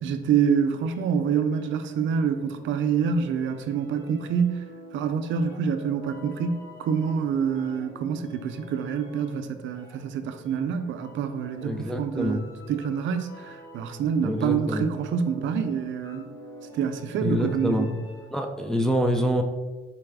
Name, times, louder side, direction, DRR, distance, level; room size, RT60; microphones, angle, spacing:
voice 1, 0.0-4.6 4.9-16.3 16.7-17.9, right 7 dB, 70° right, 9 dB, 0.4 m, -27 dB
sound 1, 0.8-18.5, equal, 85° left, 1.0 m, -47 dB
voice 2, 11.6-12.5 14.2-14.9 17.2-18.0 18.3-19.4, equal, 5° left, 2 dB, 0.3 m, -26 dB
4.1 x 2.3 x 3.3 m, 1.3 s
cardioid pair, 90°, 20 cm